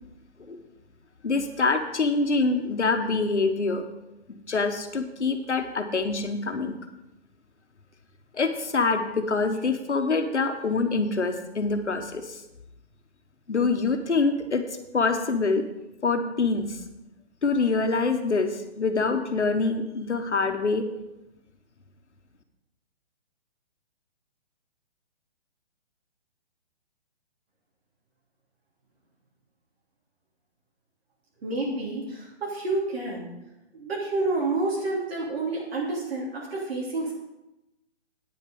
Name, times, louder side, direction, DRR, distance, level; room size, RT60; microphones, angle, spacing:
voice 1, 1.2-3.8 4.3-6.8 8.3-12.4 13.5-14.6 14.9-15.6 16.0-16.8 17.4-20.8, left 3 dB, 80° left, 6 dB, 1.5 m, -25 dB
voice 2, 31.4-33.3 33.7-37.1, right 2 dB, 60° right, -4 dB, 3.4 m, -29 dB
9.4 x 9.3 x 5.3 m, 0.94 s
figure-of-eight pair, 140°, 34 cm